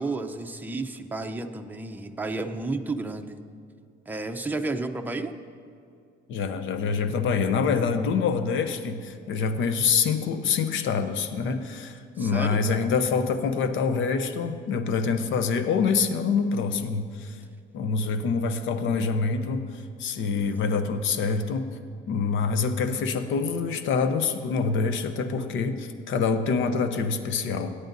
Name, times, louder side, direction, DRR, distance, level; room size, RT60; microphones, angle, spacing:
voice 1, 0.0-3.4 4.1-5.3 12.2-12.9, right 3 dB, 10° right, 5 dB, 0.6 m, -32 dB
voice 2, 6.3-17.4 17.7-21.8 22.1-27.7, left 5 dB, 70° left, 9 dB, 0.8 m, -26 dB
17.0 x 9.7 x 2.7 m, 2.4 s
cardioid pair, 95°, 21 cm